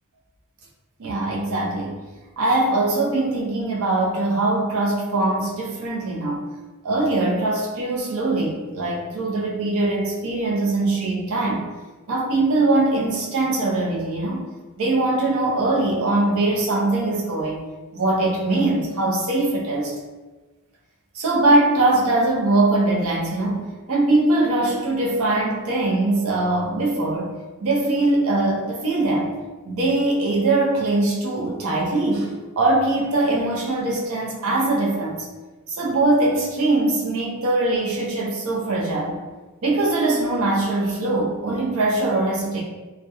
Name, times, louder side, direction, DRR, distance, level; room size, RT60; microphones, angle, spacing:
voice 1, 1.0-2.0 2.4-6.5 6.8-11.6 12.1-14.5 14.8-17.7 17.9-19.9 21.1-27.3 27.6-29.3 29.6-35.3 35.7-39.2 39.6-42.6, right 2 dB, 85° right, -3 dB, 0.6 m, -22 dB
2.2 x 2.1 x 2.8 m, 1.2 s
head